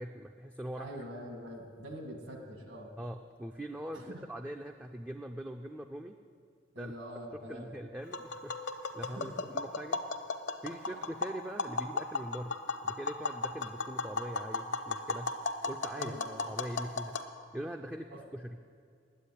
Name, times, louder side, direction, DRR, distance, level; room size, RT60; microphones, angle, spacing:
voice 1, 0.0-0.9 3.0-6.2 6.8-6.9 7.3-10.0 10.6-15.3 15.7-16.1 16.5-17.2 17.5-18.6, equal, 10° right, 4 dB, 0.3 m, -42 dB
voice 2, 0.8-2.9 3.9-4.3 6.7-7.8 9.0-9.5 10.9-11.0 16.0-16.4 18.1-18.2, equal, 70° right, 3 dB, 1.9 m, -44 dB
Tap, 8.0-17.3, left 3 dB, 65° left, 0.8 m, -36 dB
10.0 x 8.3 x 9.7 m, 2.2 s
head